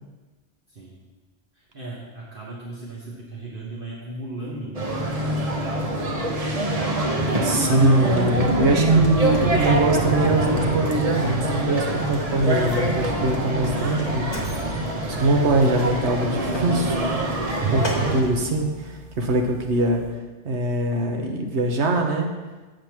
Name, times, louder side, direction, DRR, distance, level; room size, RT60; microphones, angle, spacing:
voice 1, 0.7-1.0 1.5-5.5, right 2 dB, 50° right, -4 dB, 1.3 m, -37 dB
sound 1, 4.7-18.2, right 1 dB, 35° right, 0.9 m, -24 dB
voice 2, 7.4-14.4 15.1-17.0 17.7-20.0 20.4-22.3, right 2 dB, 75° right, 3 dB, 1.3 m, -23 dB
Mechanisms, 8.0-18.8, left 1 dB, 25° left, 1.4 m, -37 dB
sound 2, 15.1-20.1, equal, 5° left, 2.7 m, -45 dB
7.9 x 5.1 x 5.9 m, 1.2 s
omnidirectional pair, 1.2 m